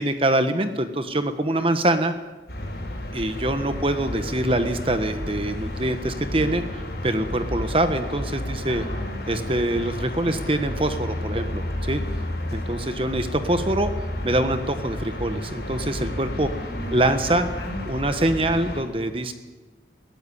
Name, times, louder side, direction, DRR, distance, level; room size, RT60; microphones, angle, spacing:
voice 1, 0.0-2.1 3.1-8.8 9.3-12.0 12.5-13.9 14.2-16.5 16.9-17.5 17.8-19.3, right 1 dB, 30° right, 9 dB, 1.2 m, -24 dB
sound 1, 2.5-18.8, left 1 dB, 60° left, 6.3 m, -31 dB
voice 2, 8.6-9.2 16.3-17.0 17.3-18.3, equal, 25° left, -3 dB, 6.3 m, -39 dB
21.5 x 16.5 x 9.9 m, 1.2 s
head